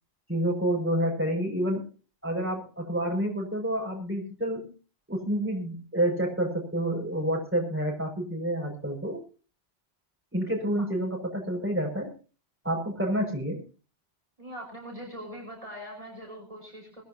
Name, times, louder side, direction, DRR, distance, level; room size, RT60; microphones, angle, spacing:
voice 1, 0.3-1.9 2.2-4.7 5.1-9.2 10.3-12.1 12.6-13.6, right 1 dB, 10° right, 0 dB, 6.5 m, -29 dB
voice 2, 14.4-17.0, equal, 35° right, -1 dB, 5.1 m, -42 dB
21.0 x 14.5 x 2.9 m, 0.37 s
omnidirectional pair, 1.1 m